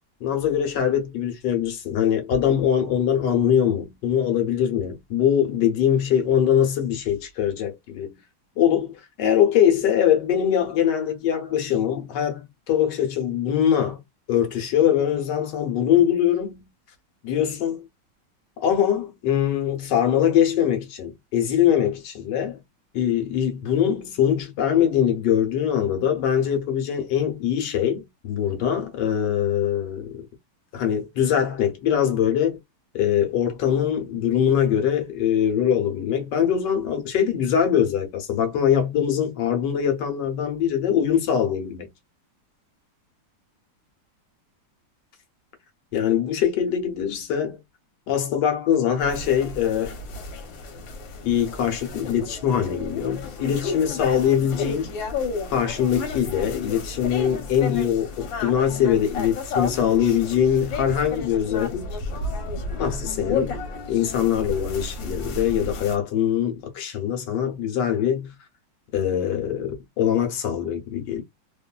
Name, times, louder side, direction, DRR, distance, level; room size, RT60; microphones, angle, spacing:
voice 1, 0.2-8.2 8.6-14.0 14.3-16.7 17.2-17.9 18.6-22.6 22.9-30.2 30.7-32.6 32.9-41.9 45.9-47.6 48.1-49.9 51.2-54.9 55.5-62.0 62.8-63.6 63.9-68.3 68.9-71.2, left 9 dB, 70° left, 1.4 m, -22 dB
sound 1, 49.0-66.0, left 3 dB, 85° left, 1.5 m, -32 dB
3.0 x 2.3 x 2.2 m
omnidirectional pair, 2.0 m